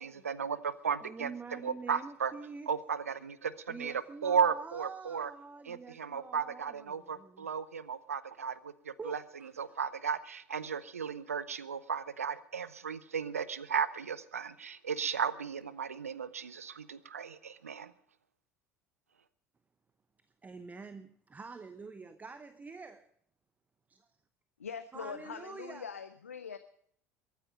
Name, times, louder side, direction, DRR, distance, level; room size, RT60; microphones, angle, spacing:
voice 1, 0.0-1.3 1.6-2.3 2.7-3.9 4.2-5.3 5.7-9.2 9.6-17.9, right 6 dB, 80° right, 0.7 m, -35 dB
voice 2, 1.0-2.7 3.7-7.5 9.0-9.5 20.4-23.1 23.9-24.1 24.9-26.0, right 4 dB, 20° right, 0.8 m, -46 dB
voice 3, 24.6-26.6, left 6 dB, 80° left, 0.6 m, -42 dB
22.5 x 9.4 x 5.2 m
figure-of-eight pair, 65°, 8 cm